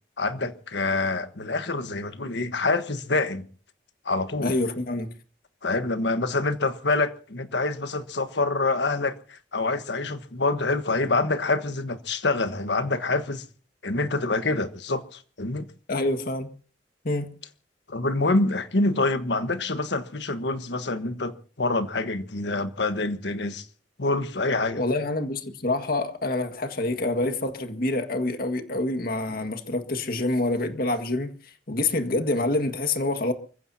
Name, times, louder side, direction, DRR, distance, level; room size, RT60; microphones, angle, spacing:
voice 1, 0.2-3.5 4.0-4.5 5.6-13.4 13.8-15.7 17.9-23.7 24.0-24.8, left 3 dB, 80° left, 1.4 m, -26 dB
voice 2, 4.4-5.1 15.9-16.5 17.0-17.3 24.8-31.3 31.7-33.3, left 2 dB, 55° left, 1.8 m, -26 dB
29.5 x 15.5 x 2.8 m
head